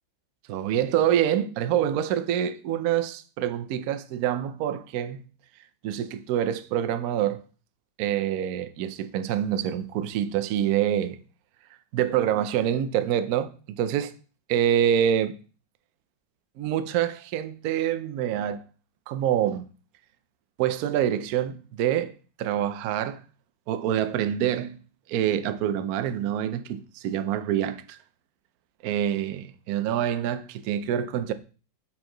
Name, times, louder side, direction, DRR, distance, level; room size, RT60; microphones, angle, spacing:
voice 1, 0.5-5.3 5.8-7.4 8.0-11.2 11.9-14.1 14.5-15.4 16.6-18.6 19.1-19.6 20.6-23.2 23.7-24.8 25.1-28.0 28.8-31.3, right 10 dB, 75° right, 0.8 m, -26 dB
5.7 x 4.5 x 3.8 m
omnidirectional pair, 2.1 m